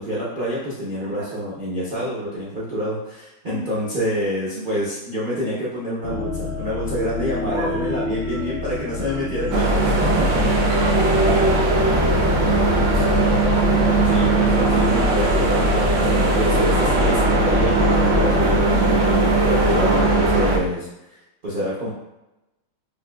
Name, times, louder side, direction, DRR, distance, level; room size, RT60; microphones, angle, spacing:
voice 1, 0.0-10.4 14.1-20.9 21.4-21.9, equal, 85° right, -8 dB, 0.4 m, -27 dB
voice 2, 1.0-1.3 3.4-4.0 4.6-4.7 7.5-9.4 10.2-10.5 10.8-13.6 18.4-18.9, right 3 dB, 55° right, -3 dB, 0.7 m, -34 dB
sound 1, 6.0-18.6, left 5 dB, 75° left, 1.5 m, -28 dB
sound 2, 9.5-20.6, right 2 dB, 70° right, 1.1 m, -18 dB
5.1 x 2.2 x 2.3 m, 0.92 s
omnidirectional pair, 2.1 m